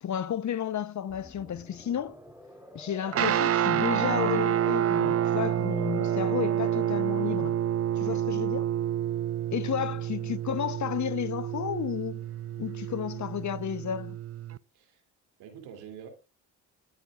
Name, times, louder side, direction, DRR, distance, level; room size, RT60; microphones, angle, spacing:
voice 1, 0.0-2.2 2.7-7.6 8.0-8.7 9.5-12.2 12.6-14.2, left 9 dB, 50° left, 1.0 m, -32 dB
sound 1, 1.1-7.6, equal, 5° right, 5.4 m, -49 dB
Guitar, 3.1-14.6, right 11 dB, 40° right, 0.5 m, -28 dB
voice 2, 15.4-16.1, right 8 dB, 85° right, 3.1 m, -46 dB
26.5 x 9.5 x 2.5 m
supercardioid pair, 65°, 38 cm